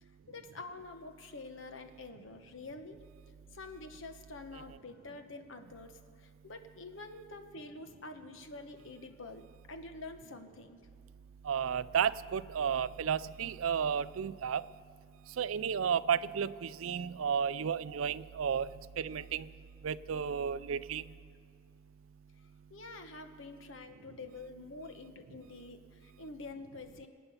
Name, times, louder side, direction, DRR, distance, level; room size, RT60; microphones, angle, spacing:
voice 1, 0.0-3.0 3.5-10.9 22.4-27.1, left 3 dB, 70° left, 7 dB, 1.2 m, -47 dB
voice 2, 11.4-14.6 15.4-18.7 19.0-19.5 19.8-21.0, right 7 dB, 85° right, 17 dB, 0.4 m, -32 dB
26.0 x 9.1 x 5.6 m, 2.3 s
head